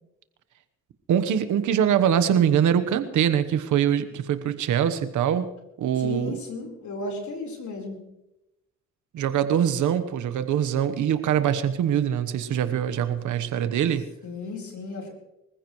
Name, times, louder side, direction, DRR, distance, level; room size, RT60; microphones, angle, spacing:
voice 1, 1.1-5.5 5.8-6.3 9.1-14.1, right 9 dB, 90° right, 11 dB, 1.2 m, -23 dB
voice 2, 6.0-8.0 14.2-15.1, left 2 dB, 80° left, 1 dB, 4.3 m, -34 dB
24.5 x 15.0 x 3.2 m, 0.92 s
cardioid pair, 75°, 29 cm